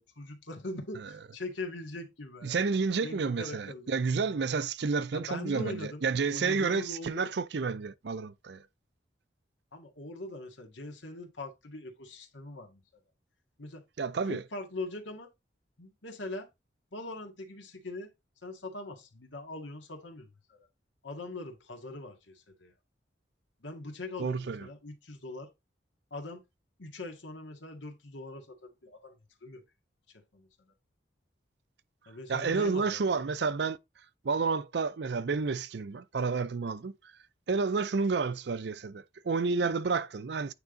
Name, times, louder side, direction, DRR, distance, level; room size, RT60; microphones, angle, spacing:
voice 1, 0.0-2.6 3.0-3.9 5.1-7.3 9.7-12.8 13.6-13.8 14.3-15.3 15.8-16.5 16.9-18.1 18.4-20.7 21.0-22.7 23.6-25.5 26.1-26.4 26.8-29.2 29.4-29.6 30.3-30.5 32.1-33.0, left 2 dB, 85° left, 1.9 m, -42 dB
voice 2, 2.4-8.6 14.0-14.4 24.2-24.7 32.3-33.8 34.2-36.9 37.5-40.5, right 4 dB, 65° right, 0.5 m, -30 dB
8.9 x 3.5 x 3.7 m
head